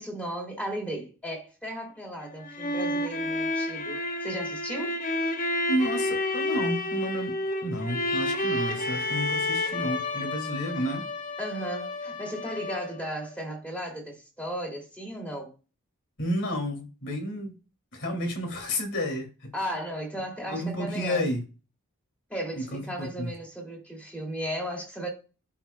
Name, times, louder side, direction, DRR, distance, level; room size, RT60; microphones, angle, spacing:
voice 1, 0.0-5.0 11.4-15.5 19.5-21.2 22.3-25.1, right 1 dB, 5° left, 2.5 m, -35 dB
sound 1, 2.2-13.1, left 2 dB, 40° left, 0.9 m, -30 dB
voice 2, 5.7-7.3 7.6-11.1 16.2-17.5 17.9-19.5 20.5-21.4 22.5-23.3, equal, 55° left, 2.5 m, -31 dB
11.5 x 4.6 x 2.2 m
head